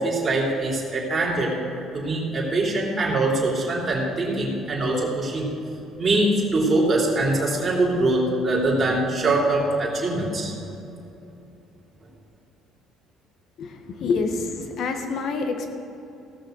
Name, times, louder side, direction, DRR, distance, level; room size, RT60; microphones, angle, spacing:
voice 1, 0.0-1.6 1.9-5.5 6.0-10.5, right 2 dB, 25° right, -5 dB, 3.4 m, -23 dB
voice 2, 13.6-15.7, left 4 dB, 60° left, 5 dB, 1.5 m, -27 dB
17.0 x 6.6 x 6.5 m, 2.9 s
cardioid pair, 120°, 0 cm